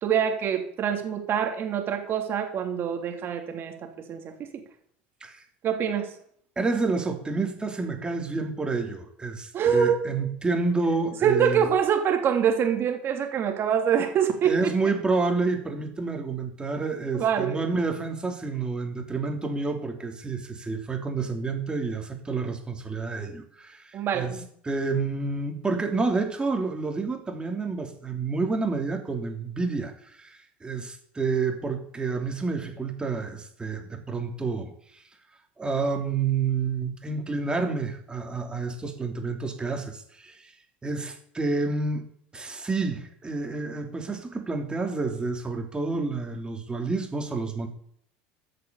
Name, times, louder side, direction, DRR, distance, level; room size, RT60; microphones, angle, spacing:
voice 1, 0.0-4.6 5.6-6.1 9.5-10.0 11.2-14.7 17.1-17.7 23.9-24.5, right 8 dB, 45° right, 4 dB, 3.1 m, -25 dB
voice 2, 6.6-11.7 14.4-24.3 24.6-35.0 35.6-40.5 40.8-42.0 42.3-47.7, right 4 dB, 15° right, 3 dB, 3.2 m, -29 dB
14.5 x 6.7 x 7.0 m, 0.64 s
hypercardioid pair, 90°, 5 cm